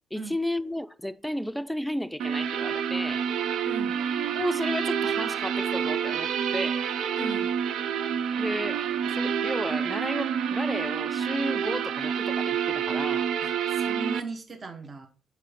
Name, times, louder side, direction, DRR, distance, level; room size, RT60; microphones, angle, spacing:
voice 1, 0.1-3.3 4.4-6.9 8.4-13.3, equal, ahead, 0.5 m, -33 dB
sound 1, 2.2-14.2, right 8 dB, 75° right, 0.5 m, -28 dB
voice 2, 3.7-4.0 7.2-7.6 13.4-15.1, right 3 dB, 40° right, 1.1 m, -37 dB
6.6 x 4.6 x 5.1 m
cardioid pair, 90°, 0 cm